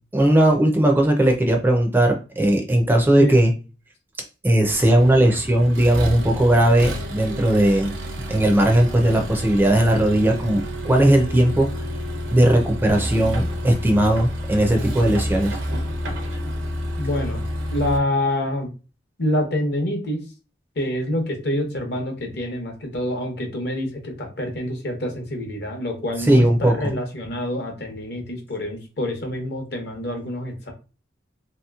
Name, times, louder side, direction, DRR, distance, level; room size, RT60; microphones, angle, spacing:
voice 1, 0.1-3.5 4.4-7.9 8.3-11.8 12.3-15.6 26.3-26.7, right 1 dB, 10° right, 3 dB, 0.4 m, -18 dB
Accelerating revving vroom, 4.7-18.0, equal, 90° right, 0.7 m, -29 dB
voice 2, 17.0-17.4 17.7-18.7 19.2-20.2 20.8-30.7, left 1 dB, 60° left, 3 dB, 0.8 m, -26 dB
2.9 x 2.8 x 2.3 m, 0.33 s
head